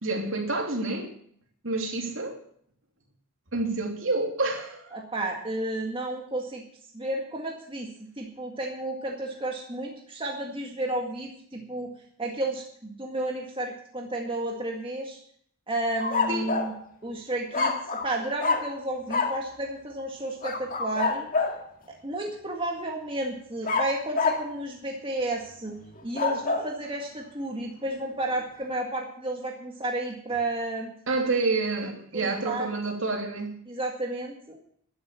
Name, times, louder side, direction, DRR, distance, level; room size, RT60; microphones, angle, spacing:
voice 1, 0.0-1.1 1.6-2.4 3.5-5.0 16.3-16.6 31.1-33.5, right 3 dB, 60° right, 3.1 m, -28 dB
voice 2, 4.9-6.6 6.9-11.9 12.2-15.2 15.7-16.7 17.0-21.3 22.0-25.8 26.0-30.9 32.1-32.7 33.7-34.6, right 1 dB, 25° right, 1.9 m, -32 dB
sound 1, 16.0-16.8 17.5-18.1 18.4-18.7 19.1-19.4 20.4-21.6 23.6-24.5 26.0-26.7, left 4 dB, 40° left, 2.0 m, -27 dB
12.0 x 11.0 x 7.0 m
head